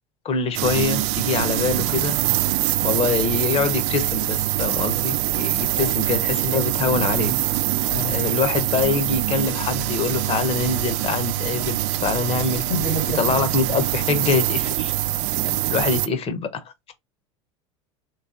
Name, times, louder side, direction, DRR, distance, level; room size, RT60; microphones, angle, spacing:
voice 1, 0.2-2.2 2.8-7.3 8.0-12.6 13.1-14.9 15.4-16.9, left 5 dB, 40° left, 1.1 m, -24 dB
sound 1, 0.5-16.1, right 15 dB, 60° right, 0.4 m, -24 dB
voice 2, 12.7-13.2, left 1 dB, 65° left, 1.9 m, -27 dB
3.2 x 3.2 x 4.0 m
hypercardioid pair, 85°, 16 cm